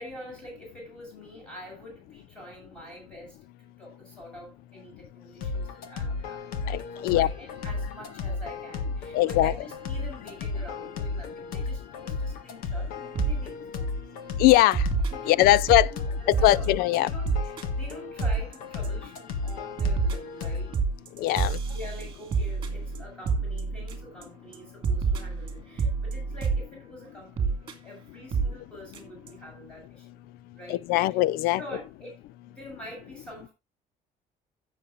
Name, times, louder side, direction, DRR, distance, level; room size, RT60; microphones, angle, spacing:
voice 1, 0.0-13.6 15.1-21.1 21.6-30.2 30.5-30.8 31.1-31.2 31.6-33.5, equal, 5° left, 7.4 m, -46 dB
sound 1, 5.4-20.7, left 3 dB, 70° left, 1.8 m, -33 dB
voice 2, 6.7-7.3 9.1-9.5 14.4-14.9 15.3-15.9 16.4-17.1 21.2-21.6 30.7-31.6, left 16 dB, 85° left, 0.5 m, -21 dB
sound 2, 13.2-13.4 13.8-14.0 14.7-15.9 16.3-16.7 17.0-17.1 17.3-17.6 17.9-18.0 18.2-18.6 18.8-19.2 19.5-24.2 24.5-24.6 24.8-26.7 27.4-27.7 28.3-28.6 28.9-29.0 29.3-29.4, right 5 dB, 30° right, 2.3 m, -28 dB
16.0 x 7.3 x 2.6 m
cardioid pair, 175°, 15 cm